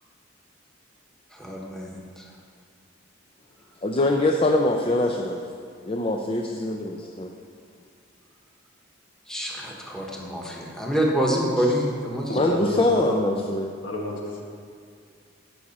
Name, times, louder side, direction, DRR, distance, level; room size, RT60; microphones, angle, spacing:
voice 1, 1.3-2.2 9.3-12.6, equal, 5° left, -2 dB, 1.3 m, -27 dB
voice 2, 3.8-5.4 5.8-7.3 12.3-13.7, left 2 dB, 30° left, 1 dB, 0.5 m, -23 dB
voice 3, 12.3-13.3 13.8-14.5, equal, 70° left, -1 dB, 1.7 m, -30 dB
16.0 x 6.1 x 4.2 m, 2.3 s
head